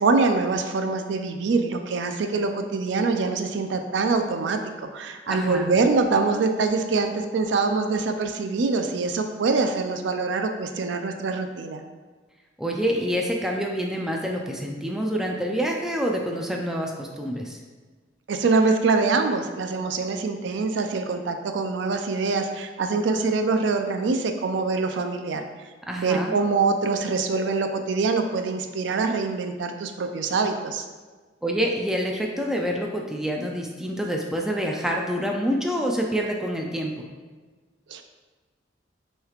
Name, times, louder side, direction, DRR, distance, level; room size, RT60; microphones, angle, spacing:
voice 1, 0.0-4.6 4.9-11.8 18.3-25.4 26.0-30.8 37.9-38.0, right 4 dB, 85° right, 6 dB, 0.4 m, -24 dB
voice 2, 5.3-5.7 12.6-17.6 25.9-26.4 31.4-37.1, equal, 5° right, 0 dB, 0.4 m, -27 dB
6.2 x 3.2 x 2.4 m, 1.4 s
head